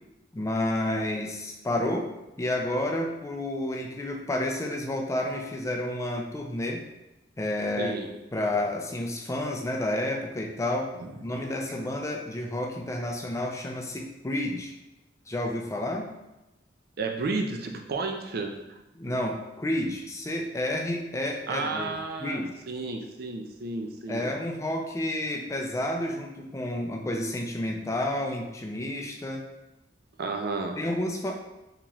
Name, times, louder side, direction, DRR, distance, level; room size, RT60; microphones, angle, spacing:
voice 1, 0.3-2.1 2.4-6.8 7.4-7.9 8.3-10.9 11.2-14.7 15.3-16.1 19.0-22.5 24.1-29.4 30.8-31.4, left 1 dB, 15° left, 1 dB, 0.4 m, -30 dB
voice 2, 7.8-8.1 11.0-11.1 17.0-18.8 21.5-24.3 30.2-30.8, right 3 dB, 55° right, 3 dB, 0.4 m, -32 dB
3.7 x 2.9 x 3.0 m, 0.97 s
head